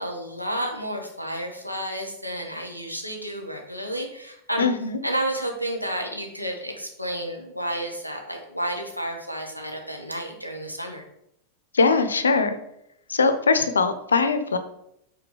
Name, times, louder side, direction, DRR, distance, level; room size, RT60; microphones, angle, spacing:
voice 1, 0.0-4.7 5.0-11.0, right 1 dB, 90° right, 1 dB, 1.1 m, -31 dB
voice 2, 4.6-5.0 11.7-12.6 13.1-14.6, left 4 dB, 70° left, 10 dB, 0.6 m, -21 dB
5.9 x 3.8 x 4.8 m, 0.77 s
figure-of-eight pair, 90°, 0 cm